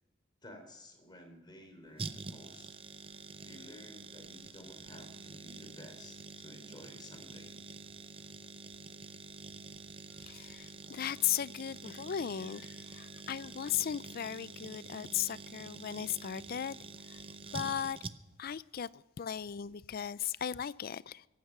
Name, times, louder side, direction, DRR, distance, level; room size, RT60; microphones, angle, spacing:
voice 1, 0.4-2.8 3.4-7.5, left 1 dB, 25° left, 3.4 m, -53 dB
sound 1, 2.0-18.5 18.7-18.8, right 4 dB, 30° right, 0.6 m, -47 dB
voice 2, 10.2-16.8 17.1-17.2 17.5-18.0 18.4-21.3, left 9 dB, 50° left, 0.4 m, -37 dB
23.5 x 9.4 x 6.0 m
head